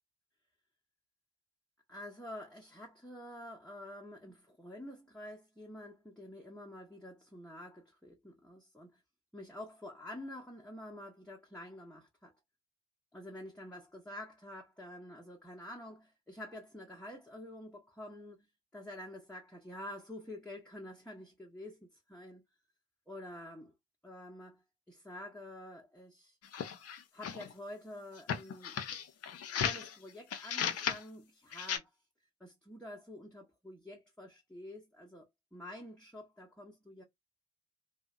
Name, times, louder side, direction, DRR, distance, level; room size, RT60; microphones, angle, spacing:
voice 1, 1.9-9.0 9.3-12.3 13.1-18.5 18.7-22.4 23.1-23.7 24.0-26.4 27.1-28.8 29.6-31.9 32.4-37.0, left 1 dB, 5° left, 0.8 m, -48 dB
sound 1, 26.4-27.5 28.2-29.9 30.3-31.0 31.5-31.8, left 8 dB, 45° left, 0.6 m, -36 dB
2.7 x 2.1 x 2.4 m
hypercardioid pair, 50°, 35 cm